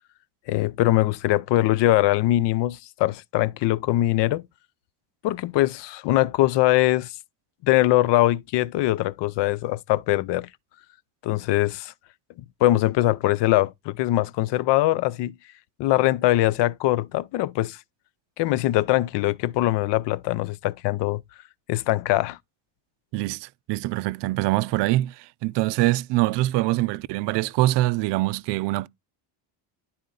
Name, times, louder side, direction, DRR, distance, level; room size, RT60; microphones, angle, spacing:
voice 1, 0.5-4.4 5.2-7.1 7.6-10.5 11.2-11.9 12.6-15.3 15.8-17.8 18.4-21.2 21.7-22.4, left 16 dB, 60° left, 0.5 m, -22 dB
voice 2, 23.1-28.9, right 17 dB, 60° right, 0.5 m, -24 dB
11.0 x 4.2 x 3.8 m
cardioid pair, 135°, 47 cm